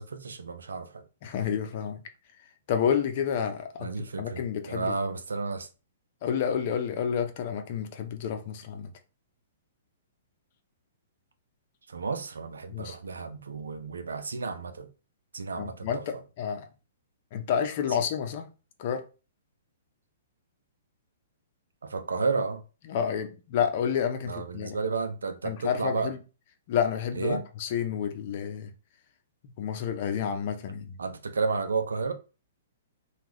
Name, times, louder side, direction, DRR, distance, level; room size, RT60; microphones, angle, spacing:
voice 1, 0.0-1.0 3.8-5.7 11.9-14.9 15.3-16.0 21.8-22.6 24.3-26.1 27.1-27.5 31.0-32.1, right 4 dB, 80° right, 0.5 m, -32 dB
voice 2, 1.2-2.0 2.7-3.9 4.2-4.9 6.2-8.9 12.7-13.0 15.6-16.7 17.3-18.5 18.8-19.0 22.9-24.8 25.4-26.2 26.7-28.7 29.6-31.0, left 8 dB, 50° left, 0.7 m, -29 dB
3.6 x 2.3 x 3.0 m
hypercardioid pair, 120°, 0 cm